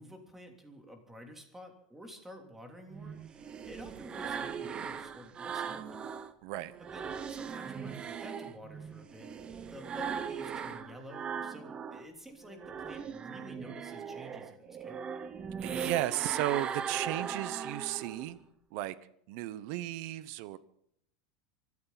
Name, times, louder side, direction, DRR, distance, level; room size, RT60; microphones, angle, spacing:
voice 1, 0.0-6.1 6.8-9.3 9.6-15.0, equal, 5° right, 4 dB, 3.2 m, -50 dB
sound 1, 2.9-6.3 6.7-12.1 12.4-18.3, right 7 dB, 25° right, 1.0 m, -39 dB
voice 2, 6.4-6.7 15.6-18.4 18.7-19.0 19.3-20.6, right 15 dB, 60° right, 16 dB, 1.0 m, -34 dB
24.0 x 14.5 x 4.1 m, 0.70 s
supercardioid pair, 145°, 4 cm